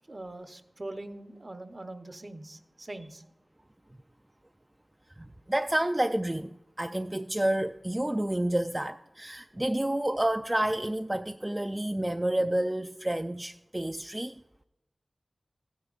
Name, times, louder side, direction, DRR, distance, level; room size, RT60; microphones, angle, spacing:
voice 1, 0.1-3.2, right 2 dB, 45° right, 0.8 m, -42 dB
voice 2, 5.2-14.4, right 1 dB, 20° right, 0.3 m, -29 dB
15.0 x 9.9 x 2.5 m
cardioid pair, 40°, 0 cm